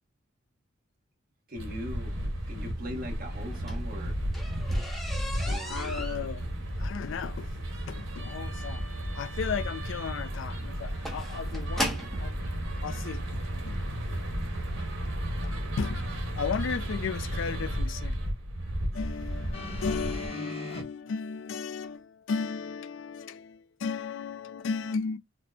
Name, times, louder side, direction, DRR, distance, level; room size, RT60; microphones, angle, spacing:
voice 1, 1.5-2.2 2.5-4.2 5.4-5.9, equal, 45° right, 1.1 m, -40 dB
sound 1, 1.6-20.3, equal, 85° right, 1.1 m, -33 dB
sound 2, 3.4-12.3 13.2-13.3 13.8-14.1 14.3-14.4 14.8-14.9, equal, ahead, 0.6 m, -38 dB
voice 2, 5.5-7.6 7.9-8.9 9.1-12.4 12.8-13.8 14.1-14.2 15.4-18.2 18.9-25.2, left 5 dB, 65° left, 0.3 m, -35 dB
sound 3, 19.5-20.8 21.8-21.9, left 1 dB, 30° left, 0.9 m, -40 dB
4.3 x 2.1 x 2.6 m
head